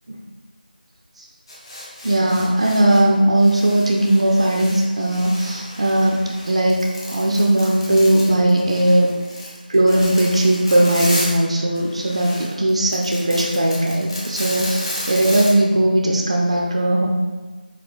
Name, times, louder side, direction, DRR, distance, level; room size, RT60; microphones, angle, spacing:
sound 1, 1.5-3.0 3.4-11.4 11.7-15.5, left 1 dB, 30° left, 0.8 m, -33 dB
voice 1, 2.0-9.1 9.7-17.1, right 1 dB, 40° right, -1 dB, 0.3 m, -18 dB
4.3 x 3.7 x 2.5 m, 1.3 s
figure-of-eight pair, 165°, 5 cm